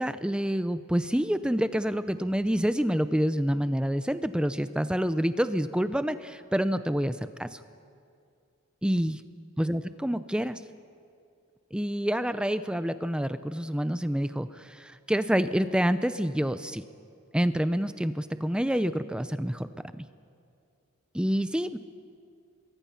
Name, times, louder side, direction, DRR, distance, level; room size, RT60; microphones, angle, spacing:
voice 1, 0.0-7.6 8.8-9.2 9.6-10.6 11.7-16.8 17.3-19.7 20.0-20.1 21.1-21.8, equal, 5° right, 12 dB, 0.5 m, -27 dB
24.5 x 22.5 x 5.8 m, 2.4 s
head